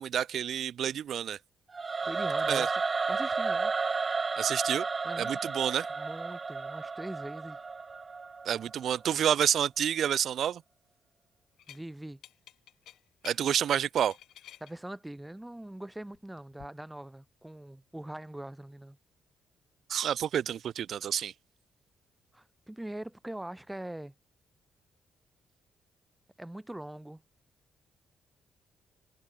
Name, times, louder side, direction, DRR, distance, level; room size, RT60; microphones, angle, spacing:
voice 1, 0.0-1.4 2.5-2.7 4.4-4.9 5.2-5.9 8.4-10.6 13.2-14.2 19.9-21.3, right 9 dB, 65° right, 0.8 m, -29 dB
Singing / Musical instrument, 1.7-8.8, right 4 dB, 30° right, 0.9 m, -32 dB
voice 2, 2.0-2.8 3.1-3.7 5.0-5.3 6.0-7.6 11.7-12.2 14.6-19.0 22.3-24.1 26.4-27.2, right 1 dB, 10° right, 2.1 m, -42 dB
sound 1, 11.6-11.8 12.2-13.4 13.8-14.7 16.1-16.7, left 12 dB, 80° left, 2.0 m, -51 dB
cardioid pair, 90°, 0 cm